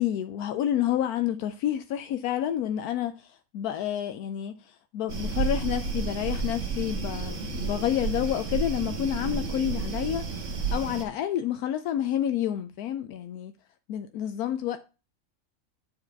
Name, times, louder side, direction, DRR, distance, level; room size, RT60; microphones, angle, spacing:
voice 1, 0.0-13.5 13.9-14.8, left 11 dB, 85° left, 1.1 m, -29 dB
sound 1, 5.1-11.0, right 4 dB, 55° right, 1.6 m, -31 dB
8.7 x 4.7 x 4.5 m
omnidirectional pair, 1.6 m